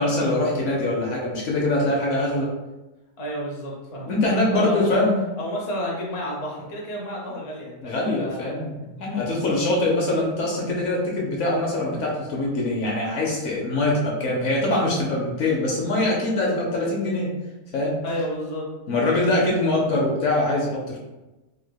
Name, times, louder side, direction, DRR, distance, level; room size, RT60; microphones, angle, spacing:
voice 1, 0.0-2.5 4.1-5.2 7.8-17.3 17.7-18.0 18.9-21.0, left 2 dB, 60° left, -2 dB, 0.9 m, -23 dB
voice 2, 3.2-5.0 5.4-8.6 9.1-9.6 18.0-19.2, equal, 35° left, -3 dB, 0.5 m, -31 dB
3.4 x 3.2 x 2.2 m, 1.1 s
omnidirectional pair, 1.5 m